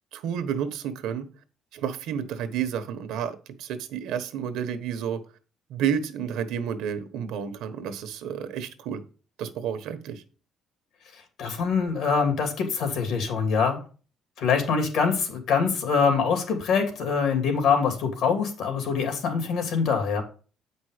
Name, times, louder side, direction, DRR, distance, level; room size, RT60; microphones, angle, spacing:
voice 1, 0.1-1.3 1.7-5.2 5.7-9.0 9.4-10.2, right 8 dB, 85° right, 1.2 m, -30 dB
voice 2, 11.4-13.8 14.4-20.2, left 5 dB, 70° left, 2.9 m, -24 dB
8.6 x 5.3 x 5.0 m
cardioid pair, 145°, 0 cm